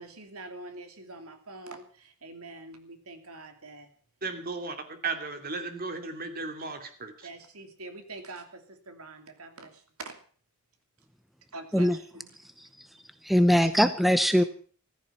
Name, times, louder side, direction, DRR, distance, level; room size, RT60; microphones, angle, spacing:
voice 1, 0.0-3.9 4.7-4.8 7.2-10.2 11.5-12.3 13.6-13.8 14.4-14.5, right 3 dB, 75° right, 2.8 m, -45 dB
voice 2, 4.2-4.8 5.0-7.1, right 3 dB, 40° right, 2.7 m, -35 dB
voice 3, 13.2-14.4, equal, ahead, 0.7 m, -21 dB
15.0 x 14.0 x 5.6 m
head